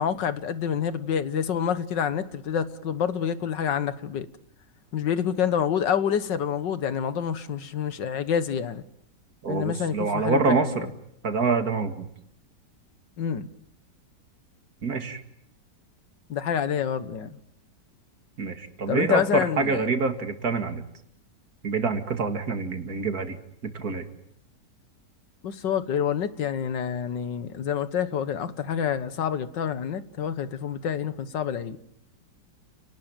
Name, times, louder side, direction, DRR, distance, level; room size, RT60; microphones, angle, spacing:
voice 1, 0.0-4.3 4.9-8.8 9.5-10.9 13.2-13.5 16.3-17.3 18.9-19.8 25.4-31.8, left 8 dB, 85° left, 1.9 m, -27 dB
voice 2, 9.4-10.9 11.2-12.1 14.8-15.2 18.4-20.8 21.6-23.4 23.6-24.0, right 4 dB, 60° right, 2.7 m, -26 dB
30.0 x 19.0 x 9.0 m
omnidirectional pair, 1.9 m